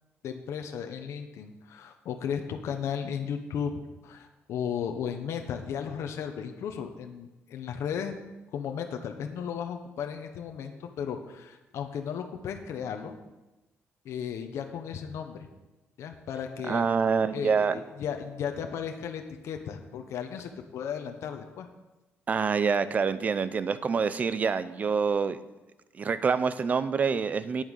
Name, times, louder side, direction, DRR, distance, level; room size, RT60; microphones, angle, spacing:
voice 1, 0.2-3.7 4.0-8.1 8.5-13.1 14.0-15.5 16.0-16.9 17.3-21.7, left 7 dB, 70° left, 5 dB, 1.0 m, -35 dB
voice 2, 16.7-17.8 22.3-25.4 26.0-27.6, right 5 dB, 35° right, 14 dB, 0.6 m, -26 dB
9.2 x 8.9 x 6.5 m, 1.1 s
cardioid pair, 150°, 5 cm